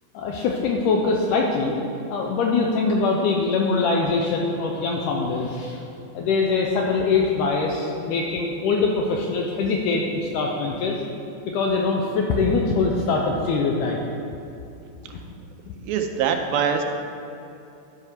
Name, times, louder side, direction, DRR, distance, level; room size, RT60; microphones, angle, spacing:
voice 1, 0.1-1.8 2.1-5.8 6.1-11.0 11.5-14.0 15.1-15.2, left 4 dB, 85° left, 0 dB, 1.9 m, -23 dB
voice 2, 15.8-16.8, right 7 dB, 85° right, 5 dB, 2.4 m, -23 dB
11.5 x 5.7 x 4.6 m, 2.7 s
omnidirectional pair, 4.3 m